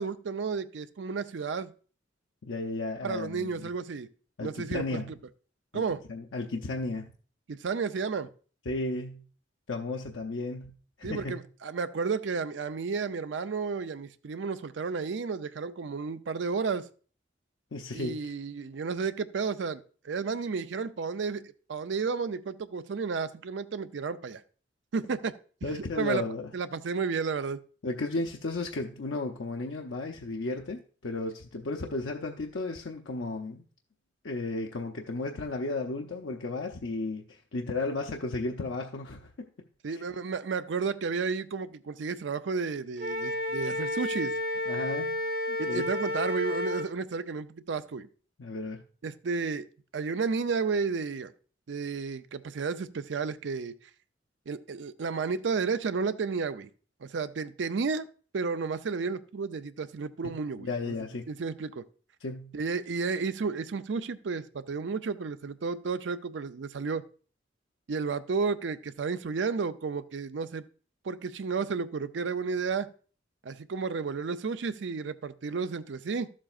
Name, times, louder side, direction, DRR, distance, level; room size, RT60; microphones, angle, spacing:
voice 1, 0.0-1.7 3.0-4.1 4.4-5.0 5.7-6.0 7.5-8.3 11.0-16.9 17.9-24.4 24.9-25.3 25.6-25.7 26.0-26.2 26.5-27.6 39.8-44.4 45.6-48.1 49.0-49.7 49.9-51.3 51.7-53.7 54.5-56.7 57.0-58.1 58.3-60.9 61.3-61.8 62.5-67.0 67.9-70.7 71.0-72.9 73.4-76.3, right 5 dB, 70° right, 12 dB, 0.5 m, -32 dB
voice 2, 2.4-3.7 4.4-5.1 5.7-5.8 6.1-7.1 8.7-9.2 9.7-10.7 11.0-11.4 17.7-18.3 25.6-26.5 27.8-33.6 34.2-39.5 39.9-40.0 44.7-45.2 45.5-45.9 48.4-48.8 60.2-61.3 62.2-62.6, left 2 dB, 85° left, 2 dB, 0.7 m, -34 dB
Wind instrument woodwind instrument, 43.0-46.9, left 1 dB, 55° right, 0.9 m, -31 dB
13.0 x 7.4 x 2.4 m, 0.41 s
head